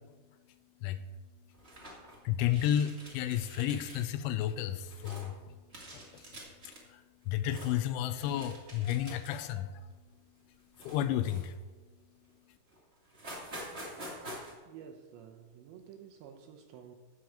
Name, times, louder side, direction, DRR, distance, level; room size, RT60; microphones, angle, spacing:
sound 1, 1.5-2.2 2.5-4.0 4.4-5.3 5.7-6.8 7.2-7.8 8.2-9.5 9.9-10.1 10.7-11.7 12.3-12.4 12.7-12.8 13.0-14.5, right 1 dB, 30° right, 1.1 m, -47 dB
voice 1, 2.2-5.4 5.9-6.2 6.7-9.9 10.8-11.5, left 11 dB, 80° left, 11 dB, 2.9 m, -32 dB
voice 2, 14.6-17.0, right 8 dB, 75° right, 4 dB, 2.8 m, -51 dB
13.0 x 4.7 x 7.6 m, 1.3 s
omnidirectional pair, 5.6 m